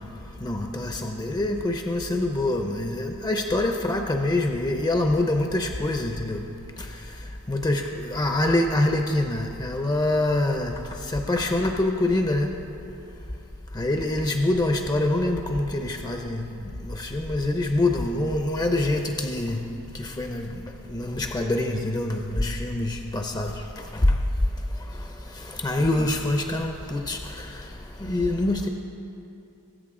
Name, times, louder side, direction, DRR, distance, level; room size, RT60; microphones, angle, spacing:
voice 1, 0.4-6.5 6.8-6.9 7.5-12.6 13.7-16.5 16.8-19.6 19.9-24.2 24.9-25.1 25.3-27.7 28.0-28.7, left 1 dB, 20° left, 4 dB, 0.5 m, -25 dB
20.0 x 8.2 x 3.7 m, 2.7 s
head